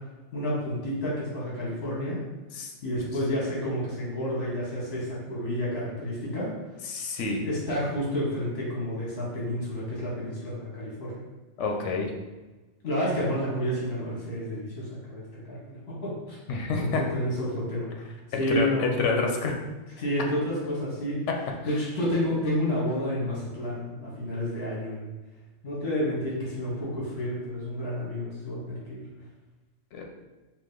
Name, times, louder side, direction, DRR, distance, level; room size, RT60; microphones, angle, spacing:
voice 1, 0.3-2.2 2.8-6.5 7.4-11.2 12.8-16.4 16.8-18.9 20.0-21.2 21.6-25.1 25.6-29.0, equal, 60° left, -5 dB, 1.3 m, -30 dB
voice 2, 6.9-7.4 11.6-12.1 16.5-17.0 18.3-19.5 29.9-30.0, left 4 dB, 80° left, 2 dB, 1.0 m, -28 dB
4.8 x 2.2 x 3.7 m, 1.2 s
omnidirectional pair, 1.2 m